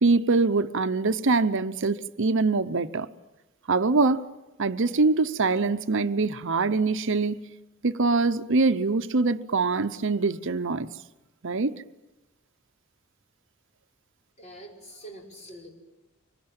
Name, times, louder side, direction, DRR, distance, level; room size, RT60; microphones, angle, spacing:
voice 1, 0.0-3.1 3.7-4.2 4.6-7.4 7.8-10.9 11.4-11.7, right 3 dB, 60° right, 0.8 m, -24 dB
voice 2, 14.4-15.7, right 1 dB, 30° left, 5.7 m, -44 dB
25.5 x 23.0 x 8.8 m
head